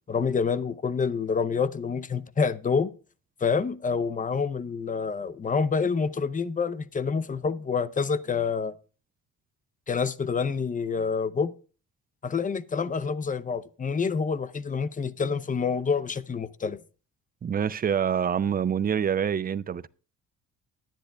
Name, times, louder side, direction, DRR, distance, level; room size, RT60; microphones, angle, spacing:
voice 1, 0.1-2.9 3.4-8.7 9.9-11.5 12.2-16.8, left 5 dB, 25° left, 0.6 m, -27 dB
voice 2, 17.4-19.9, right 8 dB, 30° right, 0.5 m, -26 dB
10.5 x 10.5 x 3.4 m
cardioid pair, 90°, 30 cm